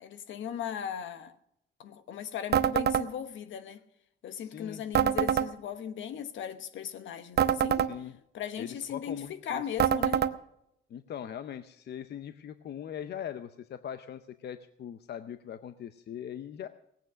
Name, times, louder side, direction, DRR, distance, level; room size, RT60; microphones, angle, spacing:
voice 1, 0.0-1.3 1.8-3.8 4.2-7.9 8.3-10.3, left 9 dB, 75° left, 1.1 m, -38 dB
sound 1, 2.5-3.1 4.9-5.5 7.4-7.9 9.8-10.3, right 9 dB, 55° right, 0.7 m, -25 dB
voice 2, 4.3-4.8 7.9-8.1 8.6-9.7 10.9-16.7, left 9 dB, 55° left, 0.7 m, -41 dB
18.0 x 8.9 x 6.2 m
cardioid pair, 90°, 20 cm